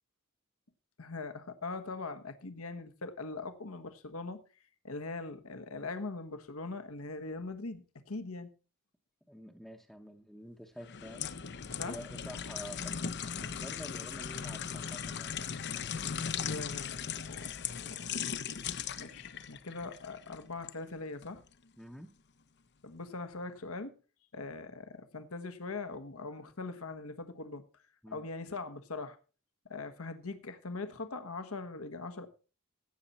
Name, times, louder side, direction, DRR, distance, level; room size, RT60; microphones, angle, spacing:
voice 1, 1.0-4.4 4.8-8.5 11.8-12.0 16.4-17.5 17.7-18.1 19.0-21.4 22.8-23.9 24.3-27.8 28.1-29.2 29.7-32.3, left 3 dB, 80° left, 1.3 m, -41 dB
voice 2, 9.3-11.3 11.8-15.3 21.8-22.1 28.0-28.3, equal, ahead, 0.9 m, -48 dB
sound 1, 10.8-20.8 21.2-21.4, left 7 dB, 55° left, 0.7 m, -38 dB
16.0 x 8.3 x 4.2 m
head